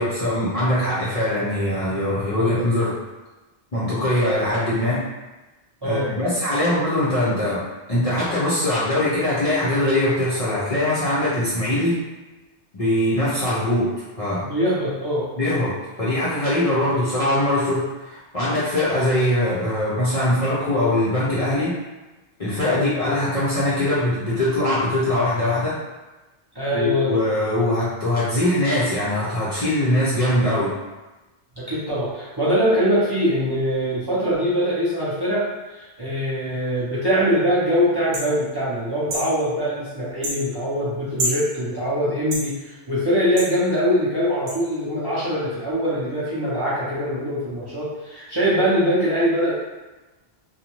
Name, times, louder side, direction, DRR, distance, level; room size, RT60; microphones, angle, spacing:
voice 1, 0.0-2.9 3.7-5.0 5.8-7.6 7.9-12.0 12.7-13.9 14.2-14.4 15.4-21.8 22.4-25.8 26.7-30.7, left 1 dB, 40° left, -10 dB, 0.6 m, -22 dB
voice 2, 14.4-15.2 22.7-22.9 26.5-27.2 31.6-35.4 35.7-49.5, equal, 30° right, -10 dB, 0.6 m, -23 dB
sound 1, 38.1-38.3 39.1-39.3 40.2-40.4 41.2-41.4 42.3-42.5 43.4-43.5 44.5-44.6, right 1 dB, 60° right, 0.8 m, -26 dB
2.6 x 2.2 x 2.9 m, 1.1 s
omnidirectional pair, 1.1 m